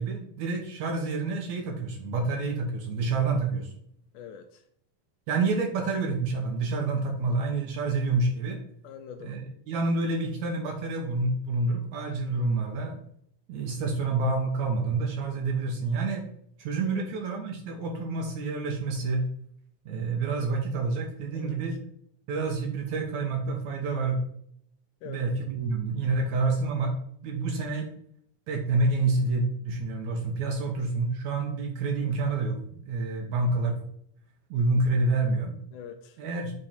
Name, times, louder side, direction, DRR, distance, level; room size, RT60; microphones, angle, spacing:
voice 1, 0.0-3.7 5.3-8.6 9.2-13.0 13.5-16.2 16.6-19.2 19.9-21.8 22.3-24.2 25.0-27.0 27.2-27.9 28.5-33.8 34.5-35.5 36.2-36.5, right 3 dB, 70° right, 2 dB, 2.0 m, -28 dB
voice 2, 4.1-4.6 8.8-9.4 13.9-14.0 16.8-17.0 21.3-21.6 25.0-25.3 35.7-36.2, left 7 dB, 80° left, 8 dB, 2.0 m, -44 dB
8.7 x 3.3 x 4.3 m, 0.68 s
omnidirectional pair, 3.9 m